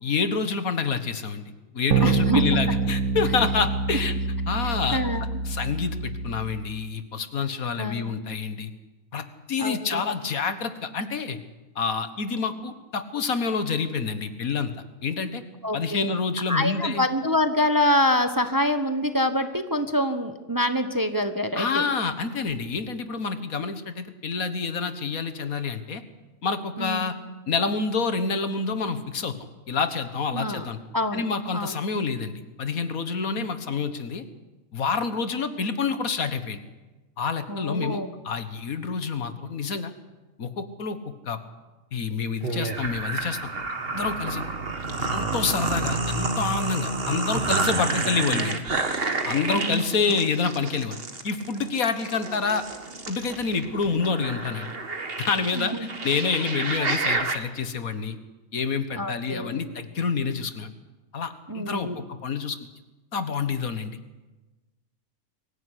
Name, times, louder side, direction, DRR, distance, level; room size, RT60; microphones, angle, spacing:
voice 1, 0.0-4.1 4.5-5.0 5.4-8.7 9.1-11.4 11.8-14.7 15.0-15.4 15.7-17.1 21.6-26.0 26.4-27.1 27.5-29.4 29.7-30.8 31.1-34.3 34.7-36.6 37.2-39.9 40.4-41.4 41.9-43.5 43.9-44.4 45.0-48.6 49.3-51.0 51.2-52.6 53.1-54.7 55.2-55.7 56.0-58.2 58.5-60.7 61.1-62.6 63.1-64.0, left 5 dB, 70° left, 11 dB, 1.9 m, -27 dB
sound 1, 1.9-6.7, right 5 dB, 85° right, 1.5 m, -26 dB
voice 2, 2.0-2.6 4.6-5.2 7.8-8.1 9.6-10.0 15.6-16.1 16.5-21.8 26.8-27.0 30.3-30.7 30.9-31.2 31.5-31.7 33.4-33.5 37.5-38.1 49.5-49.8 55.5-55.9 56.8-56.9 58.9-59.6 61.5-62.0, left 1 dB, 15° right, 8 dB, 1.1 m, -26 dB
sound 2, 42.4-57.4, right 3 dB, 40° right, 2.0 m, -29 dB
23.5 x 15.0 x 9.9 m, 1.2 s
omnidirectional pair, 1.5 m